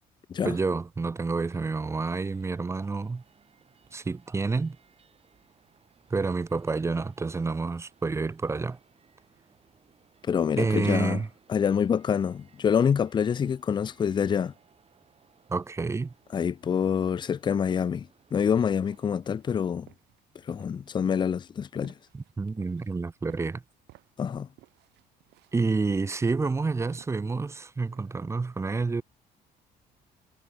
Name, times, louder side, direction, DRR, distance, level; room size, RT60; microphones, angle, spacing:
voice 1, 0.4-3.2 3.9-4.8 6.1-8.8 10.6-11.3 15.5-16.1 22.1-23.6 25.5-29.0, right 4 dB, 15° right, 0.6 m, -29 dB
sound 1, 1.4-19.2, right 6 dB, 35° right, 5.8 m, -63 dB
voice 2, 10.2-11.2 11.5-14.5 16.3-19.9 20.5-21.9 24.2-24.5, left 7 dB, 25° left, 0.4 m, -26 dB
sound 2, 17.0-28.2, right 18 dB, 85° right, 3.8 m, -59 dB
cardioid pair, 110°, 17 cm